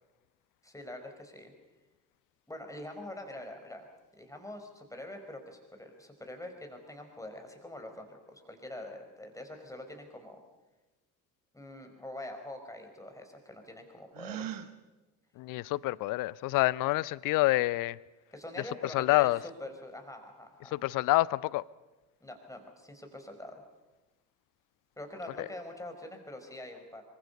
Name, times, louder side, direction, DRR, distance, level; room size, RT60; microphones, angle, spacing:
voice 1, 0.6-1.5 2.5-3.9 4.2-10.4 11.5-14.6 18.3-19.3 19.6-20.7 22.2-23.6 25.0-27.0, left 1 dB, 5° left, 4.9 m, -45 dB
Gasp, 14.1-14.7, right 11 dB, 45° right, 1.5 m, -38 dB
voice 2, 15.4-18.0 18.8-19.4 20.6-21.6 25.4-25.5, left 19 dB, 45° left, 0.6 m, -27 dB
26.0 x 24.0 x 5.4 m
figure-of-eight pair, 55°, 46 cm